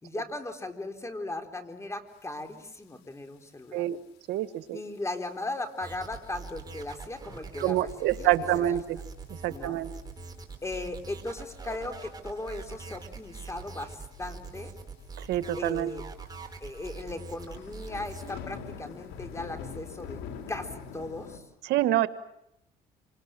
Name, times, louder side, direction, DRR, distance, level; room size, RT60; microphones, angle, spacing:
voice 1, 0.0-3.9 4.7-8.8 9.5-9.8 10.6-14.7 15.6-16.0 16.6-20.2 20.5-21.4, left 2 dB, 15° left, 6 dB, 3.8 m, -37 dB
sound 1, 2.7-2.8 3.1-3.5 4.2-4.3 5.0-5.1 5.7-5.8 6.1-6.2 6.4-6.5 7.6-7.9 8.3-8.4 9.3-9.4 9.9-10.4 10.7-10.9 11.4-12.1 13.1-13.4 13.7-13.8 14.1-14.2 14.4-14.5 15.1-15.2 15.6-15.7 16.3-21.4, left 6 dB, 90° left, 4.5 m, -43 dB
voice 2, 4.3-4.8 7.6-8.8 9.4-9.9 15.3-15.9 21.6-22.1, right 13 dB, 85° right, 12 dB, 1.5 m, -26 dB
sound 2, 5.8-18.3, right 4 dB, 25° right, 4.5 m, -43 dB
28.0 x 26.0 x 7.6 m, 0.78 s
cardioid pair, 110°, 17 cm